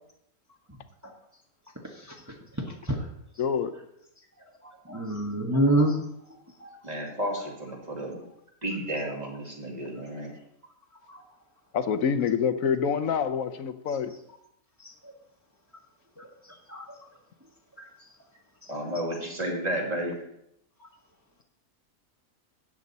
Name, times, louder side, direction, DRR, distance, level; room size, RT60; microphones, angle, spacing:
voice 1, 2.6-3.0 4.9-6.0 6.6-6.7 11.1-11.2 16.2-16.3 16.7-16.8, right 1 dB, 15° right, -1 dB, 1.3 m, -26 dB
voice 2, 3.4-3.7 11.7-14.1, left 7 dB, 75° left, 10 dB, 1.2 m, -26 dB
voice 3, 6.8-8.3 8.6-10.3 18.7-20.2, right 1 dB, 30° right, 0 dB, 2.4 m, -32 dB
13.0 x 8.7 x 4.1 m, 0.79 s
omnidirectional pair, 1.4 m